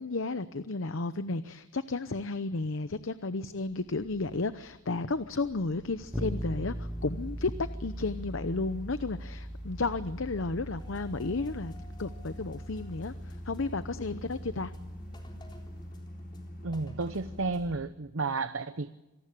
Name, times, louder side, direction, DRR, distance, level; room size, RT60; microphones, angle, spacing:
voice 1, 0.0-11.7 12.0-14.7, left 3 dB, 85° left, 12 dB, 0.8 m, -33 dB
sound 1, 2.1-2.2 2.7-17.9, equal, 45° left, 6.3 m, -47 dB
sound 2, 6.1-15.9, equal, 5° right, 0.8 m, -41 dB
sound 3, 10.8-17.7, left 2 dB, 25° left, 3.8 m, -52 dB
voice 2, 16.6-18.9, right 3 dB, 85° right, 12 dB, 0.9 m, -32 dB
27.0 x 19.0 x 8.5 m, 1.0 s
head